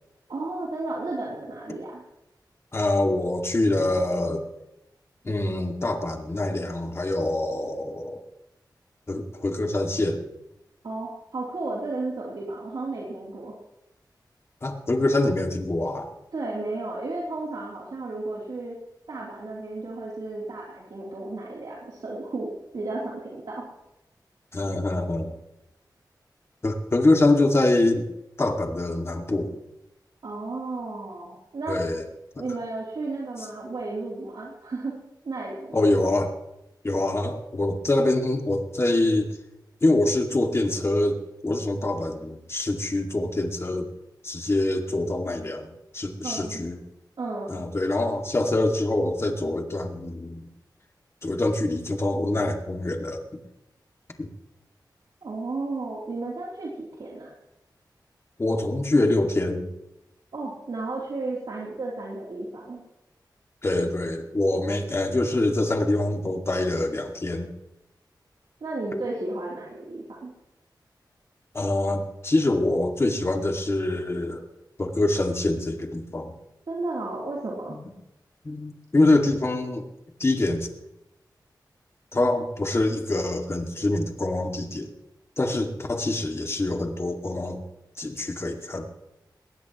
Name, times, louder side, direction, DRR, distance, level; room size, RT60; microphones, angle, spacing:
voice 1, 0.3-2.0 10.8-13.5 16.3-18.8 19.1-23.6 30.2-31.8 32.4-35.0 35.2-36.0 46.2-46.6 47.2-47.6 55.2-57.3 60.3-62.8 68.6-70.3 76.7-77.8, right 2 dB, 70° right, -4 dB, 3.3 m, -33 dB
voice 2, 2.7-4.5 5.2-8.2 9.1-10.2 14.6-16.1 24.5-25.3 26.6-28.1 28.4-29.6 31.7-32.0 32.4-32.5 35.7-36.3 36.8-39.3 39.8-43.9 44.2-46.8 47.5-50.5 51.2-53.2 54.2-54.3 58.4-59.6 63.6-67.5 71.5-74.4 74.8-76.3 77.7-77.8 78.4-79.8 80.2-80.7 82.1-84.9 85.4-87.6 88.0-88.9, left 2 dB, 35° left, 3 dB, 2.2 m, -25 dB
20.5 x 18.5 x 3.1 m, 0.90 s
wide cardioid pair, 115°, 8 cm